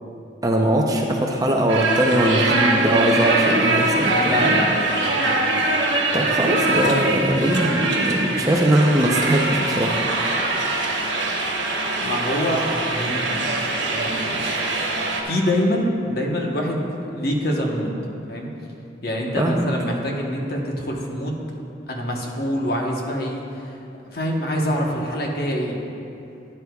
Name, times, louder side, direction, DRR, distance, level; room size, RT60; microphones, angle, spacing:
voice 1, 0.4-4.6 6.1-10.0 19.4-19.7, right 1 dB, 20° right, 0 dB, 0.6 m, -20 dB
sound 1, 1.7-15.2, right 2 dB, 75° right, 1.2 m, -23 dB
voice 2, 4.2-5.8 6.2-6.3 11.9-13.5 13.9-14.4 15.2-17.9 18.3-18.5 19.0-21.4 21.9-23.7 24.1-25.8, equal, 55° left, 0 dB, 1.1 m, -25 dB
12.5 x 9.8 x 2.3 m, 2.8 s
head